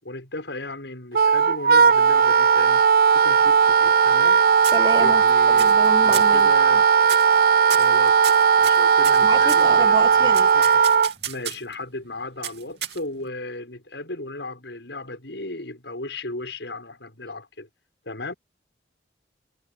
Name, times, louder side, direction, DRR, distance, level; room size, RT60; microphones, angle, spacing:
voice 1, 0.0-2.9 3.1-4.5 5.0-6.9 7.6-8.2 8.6-10.8 11.3-17.7 18.0-18.3, left 2 dB, 75° left, 6.6 m, -35 dB
Wind instrument woodwind instrument, 1.1-11.1, right 6 dB, 50° right, 0.4 m, -17 dB
sound 1, 3.4-4.3 4.6-5.2 5.6-5.9 6.1-6.4 7.0-7.4 7.7-9.7 10.3-11.7 12.4-13.3, right 11 dB, 65° right, 2.9 m, -33 dB
voice 2, 4.7-5.2 5.6-6.5 9.2-10.5, right 2 dB, 20° right, 1.5 m, -29 dB
head